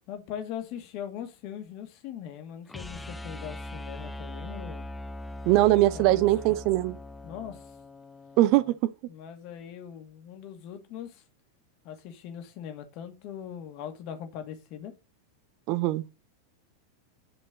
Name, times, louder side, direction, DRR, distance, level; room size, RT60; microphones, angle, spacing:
voice 1, 0.1-4.9 5.9-6.6 7.2-7.8 9.1-11.2 11.8-14.9, left 9 dB, 45° left, 2.3 m, -40 dB
sound 1, 2.7-8.8, left 1 dB, 5° left, 0.8 m, -41 dB
voice 2, 5.4-7.0 8.4-8.9 15.7-16.0, right 16 dB, 45° right, 0.7 m, -22 dB
11.0 x 5.3 x 5.2 m
figure-of-eight pair, 90°, 0 cm